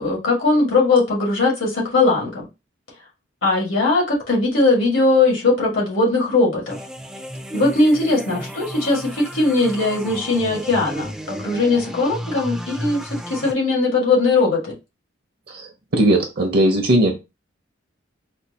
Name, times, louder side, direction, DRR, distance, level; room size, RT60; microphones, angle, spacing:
voice 1, 0.0-2.5 3.4-6.8 7.5-13.0 13.3-14.7, left 3 dB, 90° left, 1.7 m, -19 dB
sound 1, 6.7-13.5, equal, 5° right, 0.3 m, -33 dB
voice 2, 15.5-17.1, right 1 dB, 55° right, 0.7 m, -18 dB
4.3 x 2.3 x 2.8 m
head